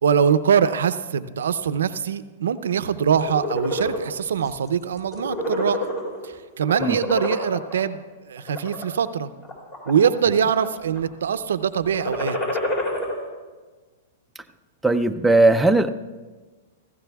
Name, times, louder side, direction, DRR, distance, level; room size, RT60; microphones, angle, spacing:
voice 1, 0.0-5.8 6.2-8.0 8.3-9.3 9.9-12.4, right 7 dB, 80° right, 13 dB, 0.6 m, -23 dB
sound 1, 3.0-4.0 4.5-4.7 5.0-6.3 6.6-7.7 8.4-8.8 9.4-10.2 10.5-11.0 11.8-13.1, left 1 dB, 35° left, 4.4 m, -27 dB
voice 2, 14.8-15.9, right 2 dB, 5° right, 7 dB, 0.5 m, -18 dB
17.5 x 15.5 x 2.3 m, 1.3 s
hypercardioid pair, 130°, 0 cm